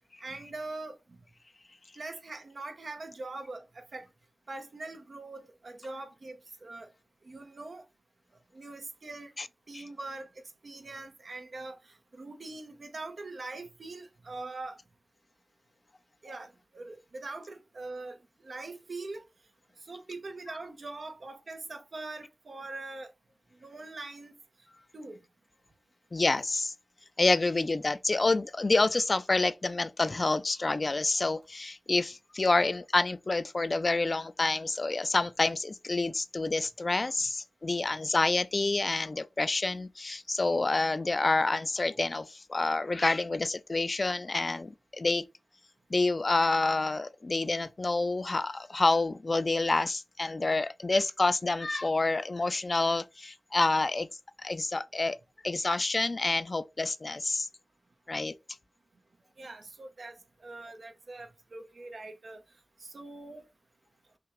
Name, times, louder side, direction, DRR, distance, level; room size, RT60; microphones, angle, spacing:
voice 1, 0.2-1.0 2.0-4.1 4.5-6.9 7.3-7.8 8.5-9.3 9.7-10.3 10.6-14.8 16.2-18.2 18.4-19.2 19.9-23.1 23.6-24.4 24.9-25.2 59.4-62.4 62.8-63.5, right 2 dB, 65° right, 0.9 m, -42 dB
voice 2, 26.1-26.7 27.2-45.2 45.9-54.1 54.4-55.2 55.4-57.5 58.1-58.3, left 3 dB, 45° left, 0.4 m, -28 dB
5.8 x 2.4 x 3.1 m
cardioid pair, 55°, 0 cm